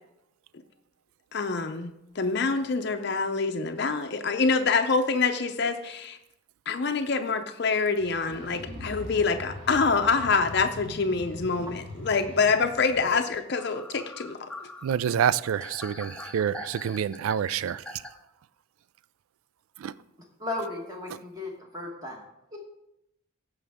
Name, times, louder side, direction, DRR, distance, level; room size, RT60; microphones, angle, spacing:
voice 1, 1.3-6.2 6.7-14.7, left 4 dB, 50° left, 6 dB, 0.5 m, -26 dB
sound 1, 8.0-13.0, left 1 dB, 50° right, 3.9 m, -41 dB
sound 2, 13.6-18.1, left 1 dB, 5° left, 0.6 m, -43 dB
voice 2, 14.8-17.8 19.8-19.9, right 8 dB, 85° right, 18 dB, 0.3 m, -27 dB
voice 3, 20.4-22.2 22.5-22.6, left 2 dB, 20° right, 0 dB, 1.2 m, -35 dB
15.0 x 5.5 x 3.5 m, 0.83 s
head